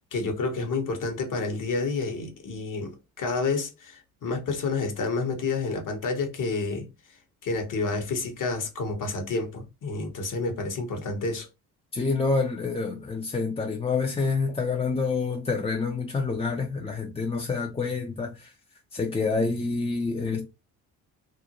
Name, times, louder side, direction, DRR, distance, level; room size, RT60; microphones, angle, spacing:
voice 1, 0.0-6.9 7.4-11.5, left 3 dB, 45° left, 1.0 m, -29 dB
voice 2, 11.9-18.5 18.9-20.5, left 4 dB, 15° left, 0.5 m, -27 dB
2.5 x 2.1 x 2.8 m
hypercardioid pair, 55°, 43 cm